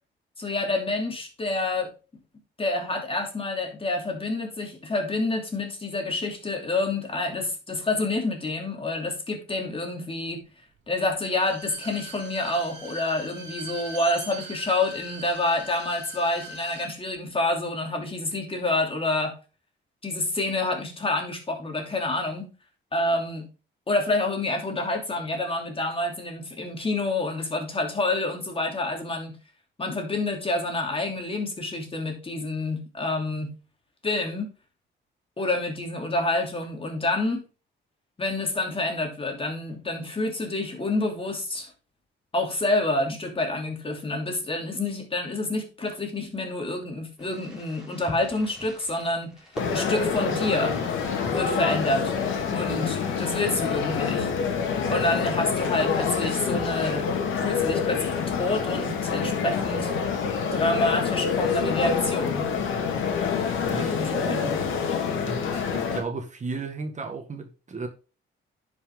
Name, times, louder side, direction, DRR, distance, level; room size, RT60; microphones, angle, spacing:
voice 1, 0.4-1.9 2.6-10.4 10.9-19.3 20.0-22.5 22.9-23.5 23.9-29.4 29.8-33.5 34.0-34.5 35.4-37.4 38.2-41.7 42.3-49.3 49.7-50.8 51.3-52.1 52.5-54.3 54.9-57.1 57.4-59.9 60.5-62.5 63.8-64.7, left 2 dB, 25° left, 2.8 m, -28 dB
Bowed string instrument, 11.3-16.9 17.2-17.3, right 1 dB, 65° right, 2.4 m, -41 dB
Fireworks, 47.2-52.8, equal, 5° right, 4.3 m, -44 dB
sound 1, 49.6-66.0, left 6 dB, 80° left, 2.1 m, -27 dB
voice 2, 63.7-64.4 65.2-67.9, right 3 dB, 35° right, 1.7 m, -35 dB
10.5 x 5.7 x 3.7 m
cardioid pair, 90°, 20 cm